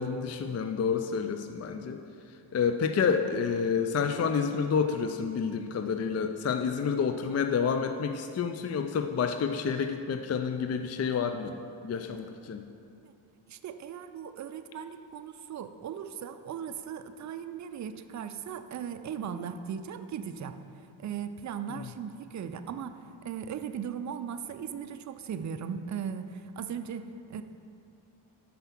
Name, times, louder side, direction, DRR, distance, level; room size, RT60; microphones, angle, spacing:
voice 1, 0.0-2.0 2.5-11.5 11.8-12.6 21.7-21.9, left 6 dB, 35° left, 6 dB, 0.4 m, -29 dB
voice 2, 13.5-20.6 21.0-27.4, right 7 dB, 40° right, 9 dB, 0.4 m, -38 dB
5.8 x 5.5 x 5.8 m, 2.6 s
cardioid pair, 55°, 49 cm